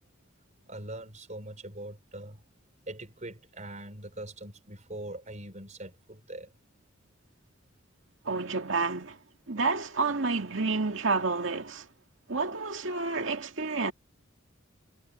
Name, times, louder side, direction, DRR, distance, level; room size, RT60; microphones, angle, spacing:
voice 1, 0.7-2.4 2.9-6.5, right 1 dB, 40° right, 4.6 m, -42 dB
voice 2, 8.2-9.2 9.5-11.9 12.3-13.9, right 4 dB, 75° right, 2.2 m, -29 dB
head